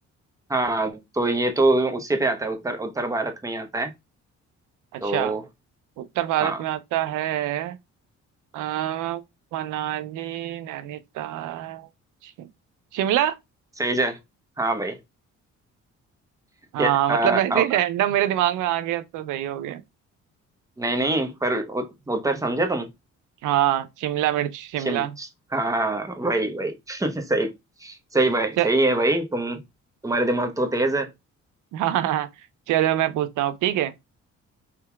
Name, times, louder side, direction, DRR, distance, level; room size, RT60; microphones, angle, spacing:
voice 1, 0.5-3.9 5.0-5.4 6.4-6.6 13.8-14.2 14.6-15.0 16.8-17.6 20.8-22.9 24.8-27.5 27.8-29.6 30.0-31.1, right 2 dB, 10° right, 0.7 m, -24 dB
voice 2, 4.9-5.3 6.0-7.8 8.5-9.2 9.5-11.9 12.2-12.5 12.9-13.4 16.7-19.8 23.4-25.1 28.6-28.7 31.7-32.3 32.7-33.9, right 13 dB, 85° right, 0.5 m, -25 dB
3.5 x 2.8 x 2.2 m
cardioid pair, 90°, 30 cm